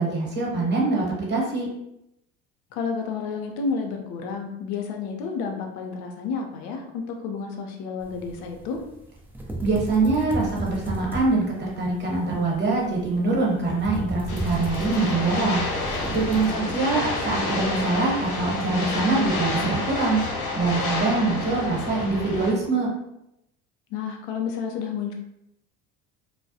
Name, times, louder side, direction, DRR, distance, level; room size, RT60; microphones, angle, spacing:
voice 1, 0.0-1.7 9.6-15.6 16.1-20.2 20.6-22.9, right 3 dB, 30° right, -3 dB, 1.0 m, -24 dB
voice 2, 2.7-8.8 16.3-16.7 23.9-25.1, left 5 dB, 75° left, 3 dB, 0.6 m, -31 dB
sound 1, 8.0-16.5, right 2 dB, 5° right, 0.4 m, -35 dB
sound 2, 14.3-22.5, left 2 dB, 55° left, 0.9 m, -29 dB
2.2 x 2.1 x 2.7 m, 0.82 s
hypercardioid pair, 70°, 36 cm